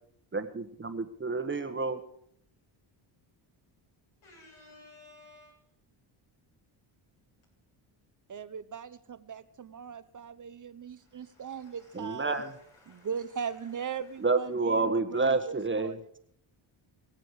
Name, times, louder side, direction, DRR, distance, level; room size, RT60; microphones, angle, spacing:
voice 1, 0.3-2.0 11.9-12.5 14.2-15.9, right 3 dB, 25° right, 8 dB, 1.4 m, -29 dB
voice 2, 4.2-5.6 11.0-13.5 13.9-14.2, left 2 dB, 80° left, -1 dB, 8.0 m, -57 dB
voice 3, 8.3-12.4 12.9-16.0, right 7 dB, 40° right, 13 dB, 0.9 m, -39 dB
22.5 x 7.6 x 4.9 m, 0.68 s
cardioid pair, 100°, 48 cm